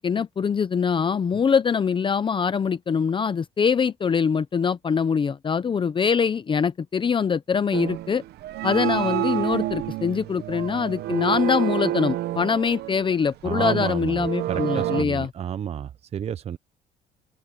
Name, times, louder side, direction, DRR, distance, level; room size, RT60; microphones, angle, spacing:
voice 1, 0.0-8.2 8.6-15.3, left 6 dB, 30° left, 0.7 m, -23 dB
sound 1, 7.7-15.0, right 14 dB, 75° right, 1.0 m, -29 dB
voice 2, 13.4-14.1 14.5-16.6, right 9 dB, 40° right, 0.6 m, -30 dB
open air
cardioid pair, 110°, 17 cm